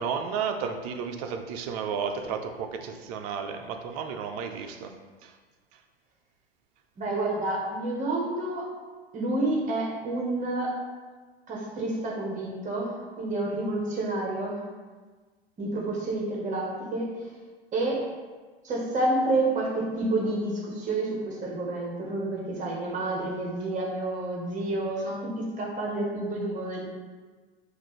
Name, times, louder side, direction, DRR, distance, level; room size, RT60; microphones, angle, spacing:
voice 1, 0.0-4.9 5.2-5.3, right 6 dB, 40° right, 5 dB, 0.5 m, -32 dB
voice 2, 7.0-8.7 9.1-10.8 11.5-14.7 15.6-17.3 17.7-18.1 18.6-26.9, right 2 dB, 25° right, -2 dB, 1.2 m, -29 dB
5.9 x 2.6 x 3.2 m, 1.4 s
figure-of-eight pair, 85°, 31 cm